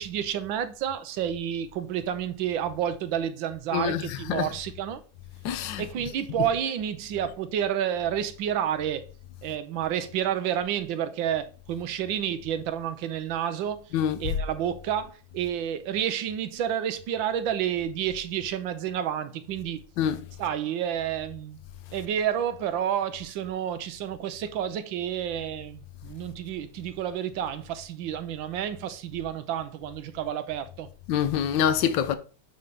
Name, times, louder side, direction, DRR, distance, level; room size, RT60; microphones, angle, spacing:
voice 1, 0.0-5.0 5.8-9.0 9.4-13.9 14.2-19.8 20.4-21.6 21.9-30.9, right 9 dB, 75° right, 1.5 m, -30 dB
voice 2, 3.7-4.5 5.4-5.8 6.4-6.5 13.9-14.2 20.0-20.2 31.1-32.2, left 9 dB, 70° left, 1.4 m, -25 dB
8.7 x 3.9 x 3.6 m
omnidirectional pair, 2.2 m